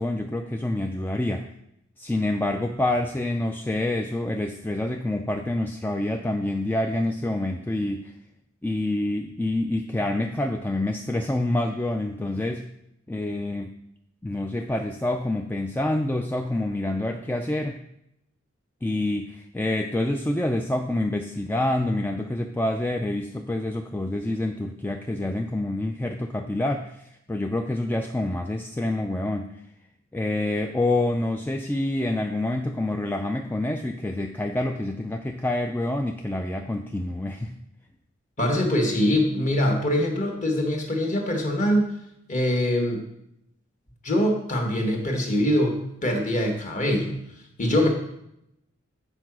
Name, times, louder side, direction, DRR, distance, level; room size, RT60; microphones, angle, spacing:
voice 1, 0.0-1.5 2.0-8.1 8.6-12.6 13.1-13.7 14.2-17.8 18.8-29.6 30.1-37.5, left 1 dB, 10° left, 4 dB, 0.4 m, -27 dB
voice 2, 38.4-41.9 42.3-43.0 44.0-47.2 47.6-47.9, left 1 dB, 35° left, 2 dB, 1.5 m, -23 dB
8.0 x 4.8 x 6.0 m, 0.79 s
head